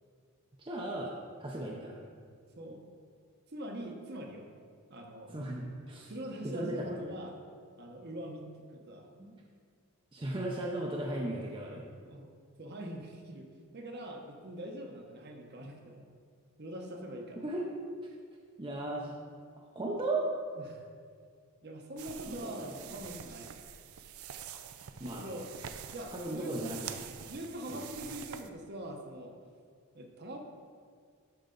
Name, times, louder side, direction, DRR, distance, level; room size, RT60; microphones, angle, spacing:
voice 1, 0.6-1.1 1.4-2.0 5.3-6.1 6.4-7.0 9.2-9.3 10.1-11.9 17.4-17.7 18.6-19.2 19.6-20.3 22.3-22.8 25.0-25.3 26.1-27.1 27.7-27.9, right 2 dB, 25° right, -2 dB, 0.6 m, -36 dB
voice 2, 3.5-4.5 4.9-5.3 6.1-7.4 7.8-9.1 12.0-12.3 12.6-13.5 13.7-16.0 16.6-17.4 20.6-20.8 21.6-23.5 25.1-25.5 25.9-26.6 27.3-29.4 29.9-30.4, right 1 dB, 45° right, 2 dB, 1.0 m, -43 dB
sound 1, 22.0-28.5, right 8 dB, 75° right, 0.5 m, -46 dB
12.0 x 4.7 x 3.9 m, 2.1 s
head